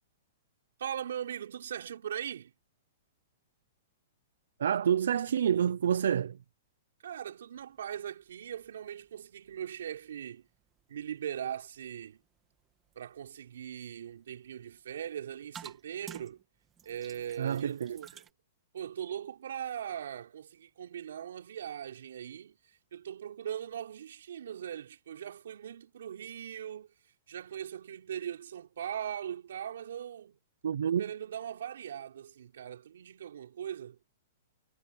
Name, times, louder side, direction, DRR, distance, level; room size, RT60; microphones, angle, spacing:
voice 1, 0.8-2.5 7.0-10.5 10.9-12.2 13.0-16.4 16.8-18.2 18.7-26.9 27.3-30.4 30.9-34.0, right 9 dB, 70° right, 5.8 m, -40 dB
voice 2, 4.6-6.4 17.4-18.0 30.6-31.0, right 8 dB, 90° right, 0.5 m, -28 dB
sound 1, 7.5-18.3, right 8 dB, 15° right, 2.1 m, -56 dB
hypercardioid pair, 180°, 0 cm